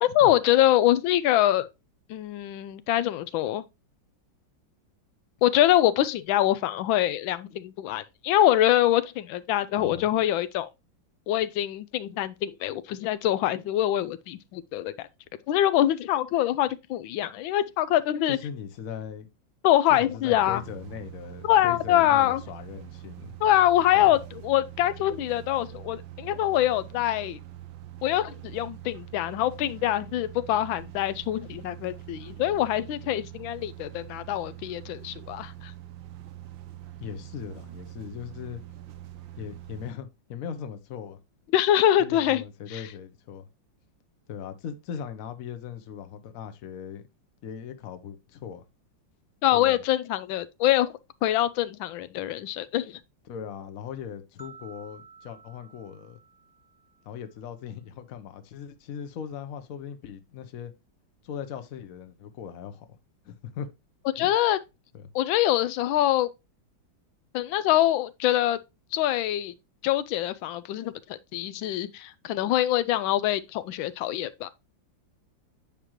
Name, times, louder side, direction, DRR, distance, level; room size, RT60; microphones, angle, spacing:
voice 1, 0.0-1.7 2.1-3.6 5.4-10.7 11.3-15.1 15.5-18.4 19.6-20.6 21.4-22.4 23.4-24.2 24.4-27.4 28.0-35.7 41.5-42.4 42.7-42.8 49.4-50.9 51.2-53.0 64.2-64.6 65.1-66.3 67.3-68.6 68.9-69.5 69.8-74.5, left 13 dB, 85° left, 1.4 m, -24 dB
voice 2, 9.8-10.1 18.3-19.3 19.9-23.3 23.9-24.2 37.0-38.6 39.4-41.2 42.0-43.5 44.3-47.0 47.4-48.6 49.5-49.8 53.3-56.2 57.0-60.7 61.2-62.9 63.2-63.7 64.2-64.3 64.9-65.1, left 8 dB, 55° left, 1.1 m, -39 dB
sound 1, 20.3-39.9, right 13 dB, 75° right, 1.4 m, -44 dB
sound 2, 54.4-57.5, right 5 dB, 15° left, 1.1 m, -52 dB
8.9 x 5.0 x 3.0 m
omnidirectional pair, 2.1 m